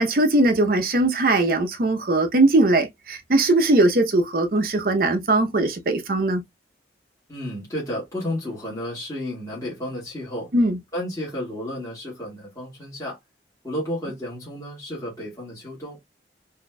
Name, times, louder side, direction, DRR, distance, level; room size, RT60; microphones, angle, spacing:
voice 1, 0.0-6.4 10.5-10.8, right 2 dB, 55° right, 0.7 m, -20 dB
voice 2, 7.3-10.5 10.9-13.2 13.6-16.0, left 1 dB, 20° left, 1.7 m, -32 dB
4.1 x 2.8 x 2.2 m
head